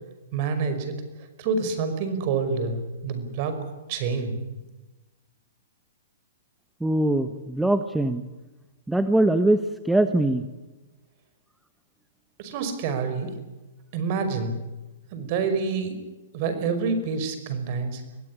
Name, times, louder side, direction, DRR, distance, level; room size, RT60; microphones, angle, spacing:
voice 1, 0.3-0.9 1.4-3.6 3.9-4.4 12.4-13.3 13.9-14.5 15.1-16.0 16.3-18.0, right 5 dB, 45° right, 10 dB, 5.4 m, -27 dB
voice 2, 6.8-8.2 8.9-10.4, right 1 dB, 5° right, 10 dB, 1.1 m, -22 dB
23.5 x 17.0 x 9.9 m, 1.1 s
hypercardioid pair, 135°, 0 cm